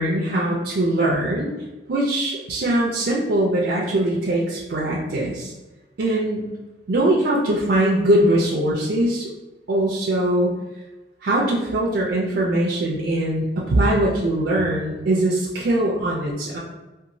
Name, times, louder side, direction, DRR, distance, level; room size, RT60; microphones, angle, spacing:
voice 1, 0.0-1.5 1.9-5.5 6.0-6.5 6.9-9.3 9.7-10.5 11.2-16.6, right 1 dB, 60° right, -4 dB, 0.4 m, -21 dB
2.9 x 2.3 x 2.6 m, 1.1 s
head